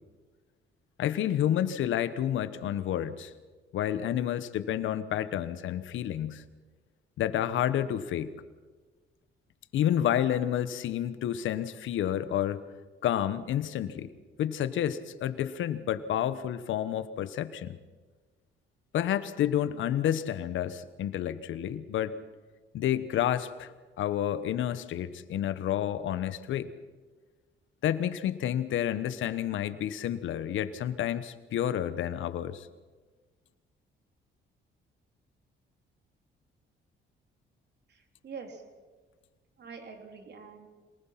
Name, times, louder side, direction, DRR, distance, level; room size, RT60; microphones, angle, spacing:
voice 1, 1.0-3.3 3.7-6.4 7.2-8.3 9.7-12.6 13.0-14.1 14.4-17.8 18.9-22.1 22.7-23.7 24.0-26.7 27.8-32.7, left 11 dB, 80° left, 13 dB, 1.2 m, -30 dB
voice 2, 37.9-38.6 39.6-40.7, right 5 dB, 60° right, 4 dB, 3.4 m, -45 dB
26.5 x 19.5 x 5.9 m, 1.4 s
cardioid pair, 90°, 20 cm